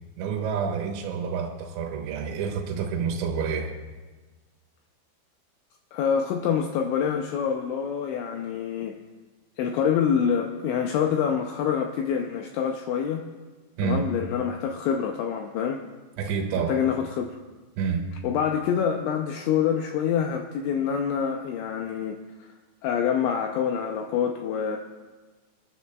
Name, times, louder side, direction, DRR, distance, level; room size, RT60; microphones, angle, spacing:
voice 1, 0.2-3.7 13.8-14.1 16.2-16.8 17.8-18.1, right 6 dB, 75° right, 1 dB, 3.3 m, -28 dB
voice 2, 5.9-9.0 9.6-13.3 13.8-15.8 16.7-17.4 18.2-22.2 22.8-24.8, left 7 dB, 85° left, 3 dB, 2.6 m, -26 dB
27.0 x 10.5 x 2.3 m, 1.3 s
omnidirectional pair, 6.0 m